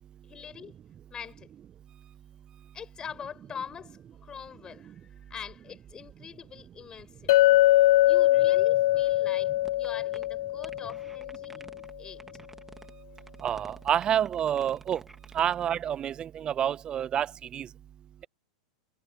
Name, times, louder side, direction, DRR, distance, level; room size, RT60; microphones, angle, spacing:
voice 1, 0.2-0.7 1.1-1.5 2.7-7.3 8.0-11.6 12.0-12.2, left 7 dB, 20° left, 5.6 m, -43 dB
Chink clink, 7.3-11.5, left 16 dB, 65° left, 0.4 m, -22 dB
sound 1, 9.6-9.9 10.1-10.3 10.6-11.9 12.2-12.9 13.2-15.6, right 2 dB, 5° right, 1.9 m, -49 dB
voice 2, 13.4-15.0 15.3-17.7, right 9 dB, 25° right, 0.5 m, -28 dB
supercardioid pair, 140°, 4 cm